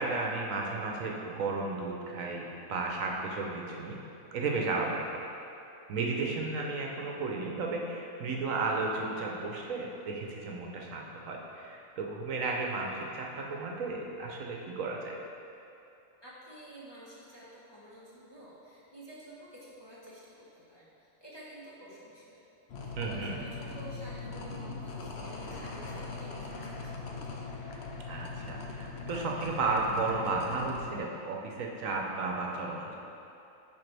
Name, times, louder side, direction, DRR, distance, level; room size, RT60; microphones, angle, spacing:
voice 1, 0.0-4.0 4.3-5.1 5.9-15.2 23.0-23.4 28.1-33.0, right 3 dB, 70° right, -1 dB, 1.1 m, -33 dB
voice 2, 16.2-22.5 22.8-27.5, right 1 dB, 20° left, -8 dB, 0.9 m, -50 dB
sound 1, 22.7-30.9, left 3 dB, 55° left, 0.9 m, -40 dB
10.0 x 3.9 x 3.4 m, 2.8 s
omnidirectional pair, 1.5 m